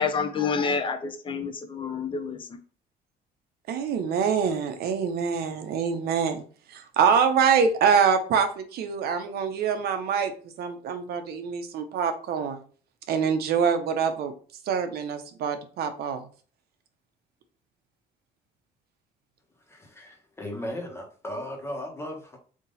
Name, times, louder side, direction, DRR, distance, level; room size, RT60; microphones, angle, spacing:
voice 1, 0.0-2.6, left 5 dB, 30° left, 7 dB, 0.6 m, -28 dB
voice 2, 3.7-6.4 6.7-10.3 10.6-12.6 13.1-14.3 14.7-16.2, right 6 dB, 65° right, 7 dB, 0.8 m, -25 dB
voice 3, 19.7-22.4, left 1 dB, 15° left, 2 dB, 1.3 m, -36 dB
3.6 x 2.7 x 4.0 m, 0.41 s
cardioid pair, 110°, 17 cm